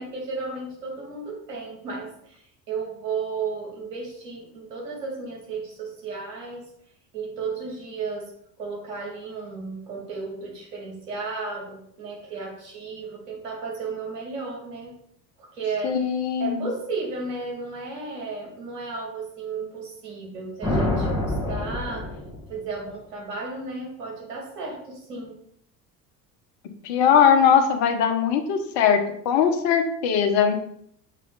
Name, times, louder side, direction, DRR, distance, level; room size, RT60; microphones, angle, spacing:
voice 1, 0.0-6.7 7.1-8.3 8.6-15.0 15.4-16.0 16.4-22.2 22.5-25.4, right 4 dB, 75° right, -1 dB, 2.4 m, -34 dB
voice 2, 15.8-16.7 26.8-30.5, left 7 dB, 60° left, 6 dB, 1.0 m, -20 dB
sound 1, 20.6-22.7, left 1 dB, 10° right, 1.6 m, -26 dB
7.5 x 3.3 x 3.9 m, 0.70 s
hypercardioid pair, 70°, 49 cm